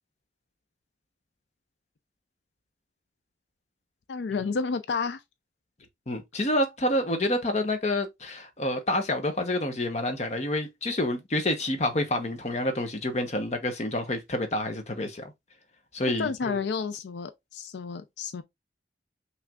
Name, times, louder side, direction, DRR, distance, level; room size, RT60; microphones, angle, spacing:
voice 1, 4.1-5.2 16.2-18.4, left 5 dB, 85° left, 0.4 m, -31 dB
voice 2, 6.1-15.3 15.9-16.6, left 1 dB, 40° left, 0.9 m, -28 dB
5.8 x 3.2 x 2.4 m
head